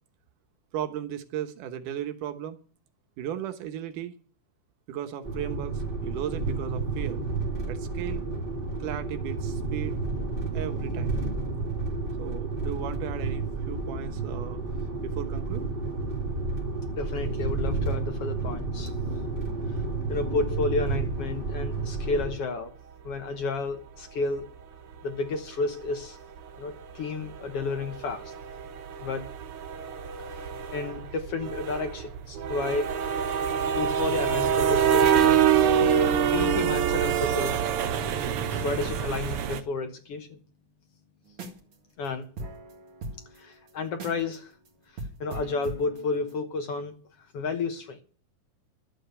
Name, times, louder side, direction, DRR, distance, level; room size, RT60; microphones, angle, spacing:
voice 1, 0.7-2.6 3.2-4.1 4.9-7.2 7.7-8.2 8.8-10.0 10.5-11.2 12.2-14.6 15.0-15.7, right 10 dB, 85° right, 9 dB, 2.7 m, -36 dB
sound 1, 5.2-22.3, right 3 dB, 25° right, 1.3 m, -31 dB
voice 2, 16.9-19.2 20.1-22.7 23.0-24.5 25.0-26.2 26.6-28.3 29.0-29.3 30.3-32.9 33.8-35.3 36.3-37.7 38.5-40.4 42.0-42.3 43.3-44.5 45.2-46.9 47.2-48.0, left 3 dB, 60° left, 7 dB, 1.8 m, -31 dB
sound 2, 23.1-23.2 24.9-25.1 25.5-25.6 25.9-26.1 26.4-26.5 26.8-39.6, right 8 dB, 65° right, 1.5 m, -26 dB
sound 3, 41.3-41.7 42.0-42.1 42.4-44.3 44.7-44.8 45.0-46.4, right 2 dB, 45° right, 2.3 m, -40 dB
12.5 x 8.0 x 6.8 m, 0.40 s
omnidirectional pair, 3.6 m